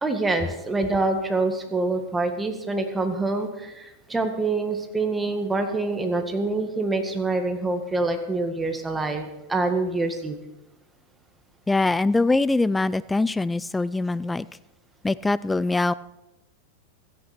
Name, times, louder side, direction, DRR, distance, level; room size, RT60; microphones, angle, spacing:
voice 1, 0.0-10.4, right 3 dB, 10° right, 5 dB, 1.9 m, -26 dB
voice 2, 11.7-14.5 15.0-15.9, left 2 dB, 10° left, 18 dB, 0.4 m, -23 dB
16.5 x 14.5 x 4.4 m, 0.95 s
supercardioid pair, 135°, 0 cm